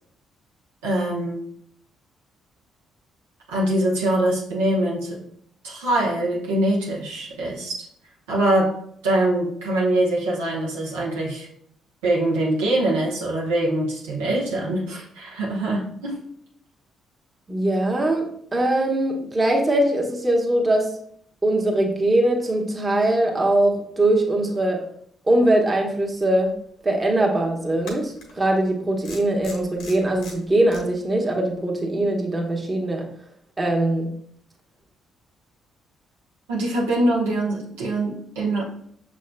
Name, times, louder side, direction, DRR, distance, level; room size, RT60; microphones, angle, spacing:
voice 1, 0.8-1.5 3.5-5.3 5.6-7.9 8.3-8.7 9.0-11.5 12.0-16.1 36.5-38.6, right 1 dB, 80° right, -4 dB, 0.9 m, -23 dB
voice 2, 17.5-20.9 21.4-24.8 25.3-26.5 26.8-33.0 33.6-34.1, right 1 dB, 25° right, 0 dB, 1.1 m, -21 dB
sound 1, 26.4-26.5 27.8-28.3 29.0-30.8, left 3 dB, 70° left, 1.2 m, -40 dB
6.3 x 3.7 x 2.2 m, 0.67 s
hypercardioid pair, 45°, 0 cm